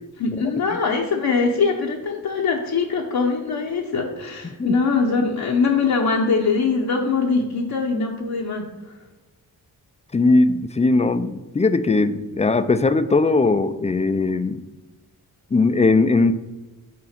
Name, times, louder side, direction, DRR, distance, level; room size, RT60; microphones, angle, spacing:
voice 1, 0.2-8.7, left 4 dB, 70° left, -1 dB, 0.9 m, -22 dB
voice 2, 10.1-14.6 15.5-16.3, left 3 dB, 20° left, 11 dB, 0.3 m, -19 dB
6.2 x 3.9 x 5.8 m, 1.1 s
cardioid pair, 90°, 37 cm